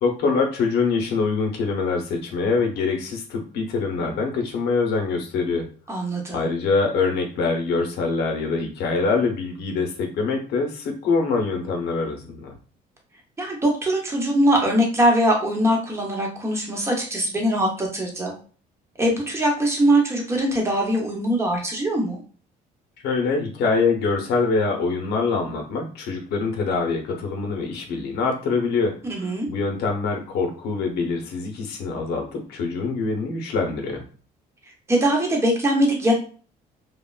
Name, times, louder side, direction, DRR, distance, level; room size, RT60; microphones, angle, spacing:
voice 1, 0.0-5.7 6.3-12.5 23.0-34.0, left 4 dB, 75° left, 2 dB, 0.8 m, -24 dB
voice 2, 5.9-6.5 13.4-18.3 19.0-22.2 29.1-29.5 34.9-36.1, right 1 dB, 15° right, 0 dB, 0.9 m, -22 dB
3.2 x 2.1 x 2.3 m, 0.40 s
cardioid pair, 110°, 17 cm